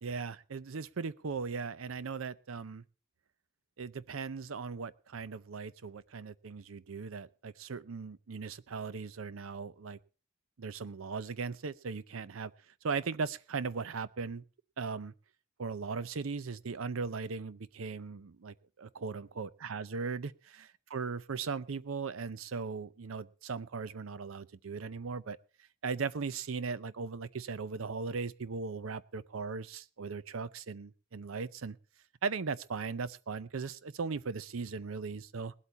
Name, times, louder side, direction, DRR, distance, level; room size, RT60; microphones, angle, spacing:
voice 1, 0.0-2.8 3.8-10.0 10.6-12.5 12.8-14.4 14.8-15.1 15.6-25.4 25.8-31.8 32.2-35.5, right 5 dB, 70° right, 17 dB, 0.6 m, -38 dB
19.5 x 8.3 x 4.2 m, 0.36 s
head